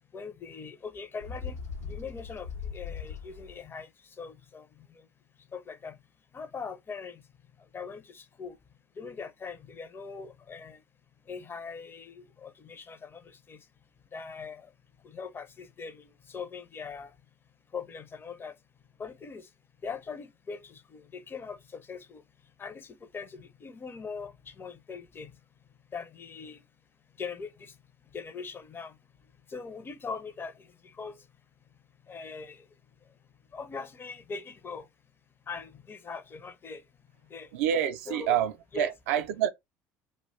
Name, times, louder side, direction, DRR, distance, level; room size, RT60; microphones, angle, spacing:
voice 1, 0.1-1.6 1.9-3.9 4.2-5.1 5.5-6.0 6.3-7.2 7.7-8.6 9.0-10.8 11.3-13.6 14.1-14.7 15.0-17.1 17.7-18.5 19.0-19.5 19.8-22.2 22.6-25.3 25.9-26.6 27.2-27.7 28.1-29.0 29.5-31.2 32.1-32.7 33.5-34.9 35.5-36.8 37.3-37.5 38.1-38.4 38.7-38.9, left 5 dB, 25° left, 0.4 m, -41 dB
Bird, 1.2-3.7, left 6 dB, 85° left, 0.5 m, -39 dB
voice 2, 37.5-39.5, right 9 dB, 70° right, 0.3 m, -27 dB
2.3 x 2.1 x 3.0 m
figure-of-eight pair, 60°, 8 cm